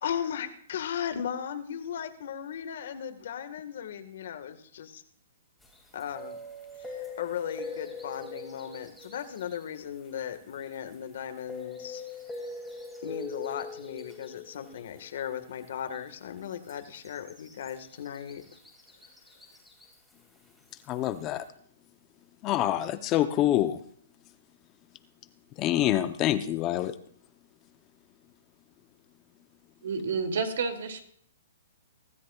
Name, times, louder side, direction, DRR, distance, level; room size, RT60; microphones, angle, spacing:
voice 1, 0.0-5.0 5.9-6.4 6.8-12.2 13.0-18.4, left 9 dB, 60° left, 8 dB, 1.6 m, -37 dB
sound 1, 5.6-11.0 11.4-15.7 15.9-16.0 16.4-20.1 20.6-21.1, left 3 dB, ahead, 2.6 m, -43 dB
voice 2, 20.9-21.5 22.4-23.8 25.6-26.9, left 13 dB, 25° left, 10 dB, 0.7 m, -26 dB
voice 3, 29.8-31.0, right 5 dB, 70° right, 6 dB, 2.4 m, -30 dB
24.0 x 13.5 x 2.4 m, 0.62 s
hypercardioid pair, 160°, 0 cm